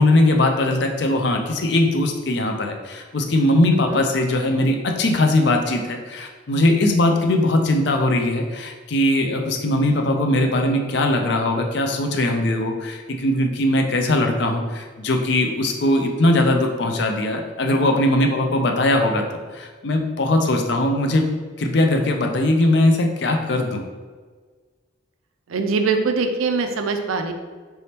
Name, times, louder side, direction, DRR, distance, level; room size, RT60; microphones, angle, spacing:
voice 1, 0.0-19.2 19.5-21.3 21.6-23.8, left 1 dB, 55° left, 4 dB, 0.5 m, -20 dB
voice 2, 25.5-27.3, right 4 dB, 90° right, 6 dB, 0.4 m, -22 dB
4.0 x 3.5 x 2.8 m, 1.5 s
head